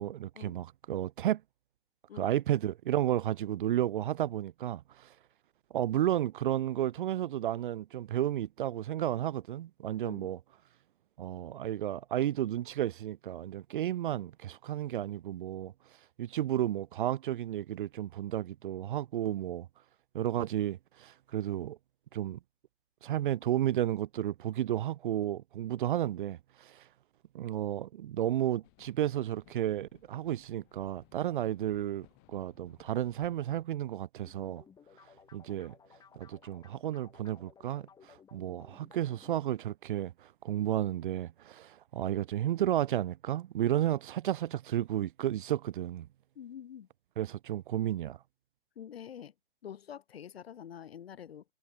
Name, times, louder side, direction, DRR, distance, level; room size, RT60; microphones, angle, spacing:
voice 1, 0.0-1.4 2.2-5.1 5.7-10.4 11.2-15.7 16.2-19.7 20.1-21.8 22.1-22.4 23.0-26.8 27.3-34.6 35.3-35.7 36.2-46.1 47.2-48.2, right 12 dB, 50° right, 0.6 m, -32 dB
voice 2, 10.0-10.3 46.4-46.9 48.8-49.3 49.6-51.4, left 9 dB, 70° left, 2.0 m, -46 dB
sound 1, 28.6-33.6, left 35 dB, 30° left, 4.6 m, -63 dB
sound 2, 34.2-39.4, left 7 dB, 10° left, 4.1 m, -59 dB
hypercardioid pair, 145°, 32 cm